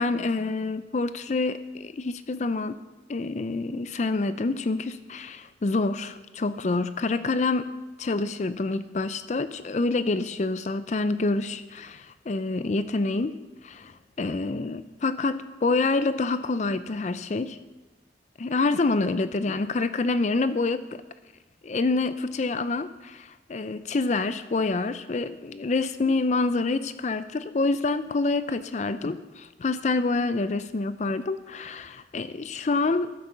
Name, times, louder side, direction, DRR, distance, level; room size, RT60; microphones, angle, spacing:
voice 1, 0.0-2.8 3.1-7.7 8.0-17.6 18.4-21.0 21.6-33.1, left 3 dB, 40° left, 13 dB, 0.4 m, -27 dB
12.5 x 9.8 x 6.8 m, 1.1 s
head